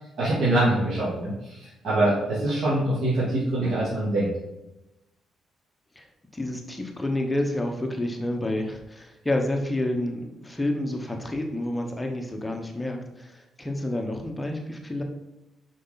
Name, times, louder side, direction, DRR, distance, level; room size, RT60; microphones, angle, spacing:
voice 1, 0.2-4.3, right 1 dB, 55° right, -10 dB, 2.7 m, -24 dB
voice 2, 6.3-15.0, left 1 dB, 10° left, 3 dB, 1.0 m, -29 dB
6.2 x 5.6 x 4.0 m, 0.95 s
cardioid pair, 90°, 0 cm